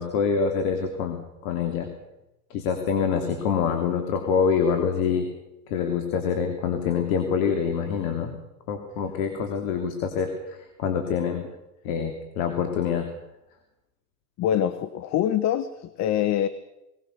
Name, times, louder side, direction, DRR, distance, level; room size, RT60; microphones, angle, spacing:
voice 1, 0.0-1.9 2.5-5.3 5.7-8.3 8.7-11.5 11.9-13.1, left 6 dB, 60° left, 6 dB, 3.3 m, -26 dB
voice 2, 14.4-16.5, left 10 dB, 35° left, 14 dB, 1.2 m, -24 dB
21.5 x 19.0 x 6.8 m, 0.92 s
hypercardioid pair, 105°, 45 cm